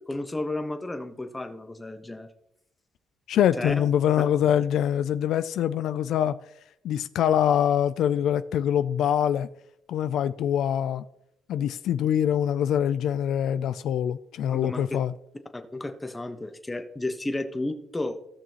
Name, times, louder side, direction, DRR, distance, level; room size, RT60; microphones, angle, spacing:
voice 1, 0.1-2.3 3.6-3.8 14.5-14.9 15.5-18.2, left 2 dB, 15° left, 7 dB, 1.2 m, -32 dB
voice 2, 3.3-6.4 6.8-9.5 9.9-11.0 11.5-15.1, left 9 dB, 80° left, 13 dB, 0.3 m, -24 dB
17.0 x 6.1 x 3.0 m, 0.79 s
cardioid pair, 90°, 0 cm